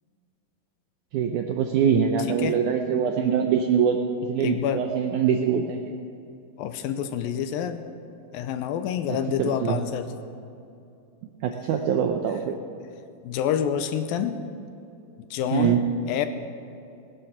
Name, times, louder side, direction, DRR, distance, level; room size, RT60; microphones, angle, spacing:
voice 1, 1.1-4.0 4.3-6.0 9.1-9.8 11.4-12.6 15.5-15.8, right 7 dB, 80° right, 4 dB, 1.8 m, -24 dB
voice 2, 4.4-4.8 6.6-7.8 8.3-10.1 13.2-14.4 15.3-16.3, left 9 dB, 80° left, 9 dB, 2.3 m, -27 dB
19.5 x 10.0 x 6.0 m, 2.6 s
omnidirectional pair, 4.4 m